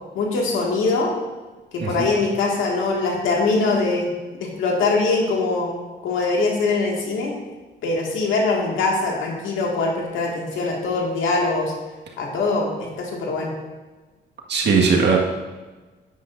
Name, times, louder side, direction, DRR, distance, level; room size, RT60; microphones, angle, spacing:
voice 1, 0.1-1.1 1.7-5.8 6.0-7.3 7.8-11.7 12.2-13.5, left 3 dB, 85° left, -1 dB, 2.0 m, -22 dB
voice 2, 1.8-2.1 14.5-15.2, right 5 dB, 60° right, -1 dB, 1.7 m, -18 dB
10.0 x 9.3 x 2.6 m, 1.3 s
cardioid pair, 90°, 20 cm